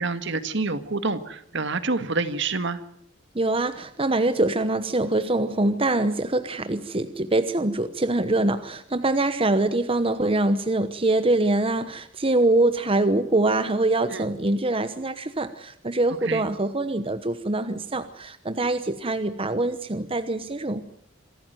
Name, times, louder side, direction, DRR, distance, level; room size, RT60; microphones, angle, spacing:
voice 1, 0.0-2.8 14.1-14.3 16.2-16.5, right 3 dB, 60° right, 11 dB, 1.7 m, -27 dB
voice 2, 3.3-20.8, right 2 dB, 25° right, 10 dB, 1.0 m, -24 dB
26.5 x 13.5 x 9.3 m, 0.69 s
head